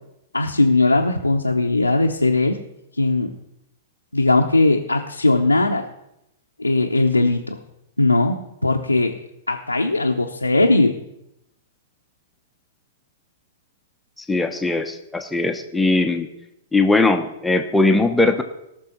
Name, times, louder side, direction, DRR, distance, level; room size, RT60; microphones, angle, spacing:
voice 1, 0.3-2.6 3.0-3.4 4.1-5.8 6.6-7.6 8.0-8.4 8.6-9.1 9.5-11.0, left 2 dB, 90° left, 0 dB, 0.7 m, -19 dB
voice 2, 14.3-16.3 16.7-18.4, left 2 dB, 5° left, 6 dB, 0.8 m, -19 dB
18.0 x 6.2 x 4.4 m, 0.84 s
figure-of-eight pair, 105°, 0 cm